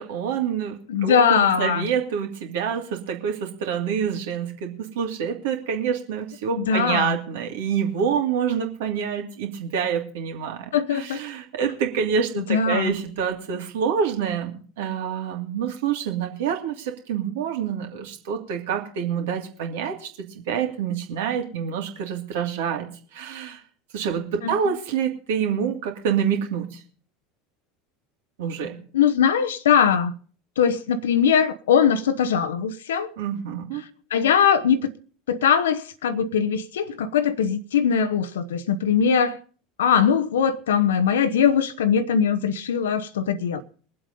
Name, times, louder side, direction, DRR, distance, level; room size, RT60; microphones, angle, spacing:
voice 1, 0.0-20.1 20.3-23.6 23.9-26.8 28.4-28.8 33.2-33.8, right 7 dB, 60° right, 2.8 m, -27 dB
voice 2, 0.9-1.9 6.6-7.2 10.7-11.2 12.4-12.9 24.4-24.7 28.9-30.1 30.6-33.1 34.1-34.9 35.3-39.4 39.8-43.6, left 7 dB, 65° left, 0.9 m, -21 dB
22.0 x 7.8 x 5.4 m
figure-of-eight pair, 75°, 0 cm